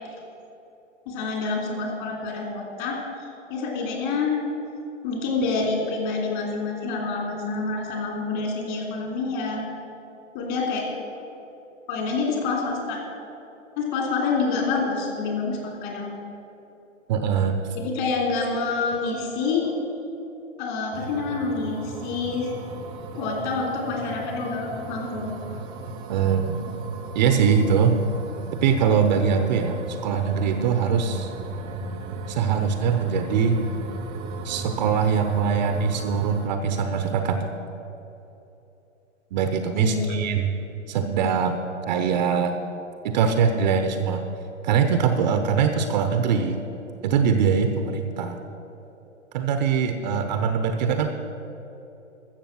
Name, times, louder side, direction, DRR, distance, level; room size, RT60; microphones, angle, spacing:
voice 1, 1.1-3.0 3.5-4.3 5.0-9.6 10.3-11.0 11.9-13.0 13.8-16.1 17.8-19.7 20.6-22.5 23.1-25.6 39.7-40.2, left 4 dB, 40° left, 0 dB, 3.4 m, -27 dB
voice 2, 17.1-17.6 26.1-26.6 27.1-28.0 28.6-29.7 30.0-31.3 32.3-33.6 34.4-37.5 39.3-40.5 40.9-42.6 43.0-44.2 44.6-46.6 47.0-48.4 49.3-51.1, right 6 dB, 35° right, 7 dB, 0.8 m, -22 dB
sound 1, 20.9-36.5, right 3 dB, 15° right, 0.5 m, -36 dB
13.5 x 7.1 x 7.2 m, 3.0 s
hypercardioid pair, 130°, 38 cm